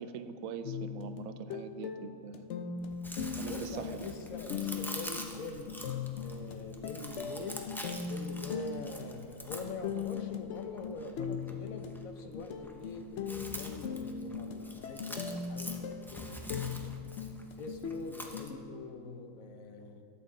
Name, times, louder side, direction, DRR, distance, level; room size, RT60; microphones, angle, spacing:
voice 1, 0.0-2.4 3.4-4.0, right 7 dB, 85° right, 10 dB, 1.0 m, -42 dB
sound 1, 0.6-18.6, left 6 dB, 65° left, 0.9 m, -40 dB
Chewing mastication, 2.8-18.5, equal, 5° left, 0.3 m, -46 dB
voice 2, 3.5-5.9 6.2-16.8 17.6-20.0, left 4 dB, 85° left, 6 dB, 1.2 m, -44 dB
13.0 x 8.2 x 3.8 m, 2.4 s
omnidirectional pair, 1.4 m